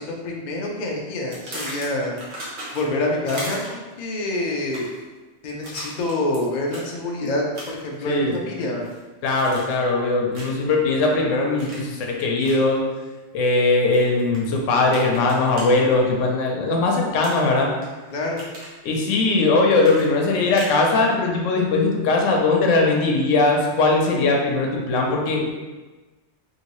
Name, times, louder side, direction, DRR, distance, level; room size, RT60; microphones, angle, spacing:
voice 1, 0.0-2.2 2.7-4.9 5.4-8.9 18.1-18.4, left 2 dB, 55° left, -1 dB, 0.5 m, -26 dB
sound 1, 1.3-3.0 3.3-3.9 4.6-5.0 5.6-6.4 6.7-6.9 7.5-7.9 8.3-9.0 9.4-9.9 10.3-10.6 11.6-11.9 12.4-12.6 13.9-14.4 14.9-15.7 17.2-17.9 18.2-18.7 19.8-20.8, right 1 dB, 65° right, 1.2 m, -36 dB
voice 2, 9.2-12.8 13.3-17.7 18.8-25.5, left 3 dB, 85° left, 0 dB, 1.0 m, -20 dB
2.8 x 2.7 x 3.0 m, 1.2 s
omnidirectional pair, 1.3 m